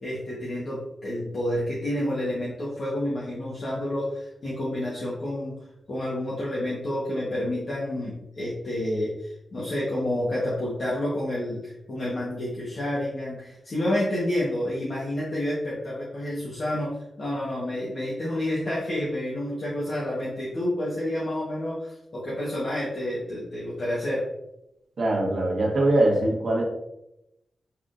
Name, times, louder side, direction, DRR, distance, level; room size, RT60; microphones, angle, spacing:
voice 1, 0.0-5.5 5.9-16.9 17.2-24.2, left 1 dB, 45° left, -7 dB, 1.2 m, -29 dB
voice 2, 25.0-26.6, right 1 dB, 50° right, -2 dB, 1.3 m, -22 dB
5.6 x 3.6 x 2.5 m, 0.85 s
wide cardioid pair, 170°, 0 cm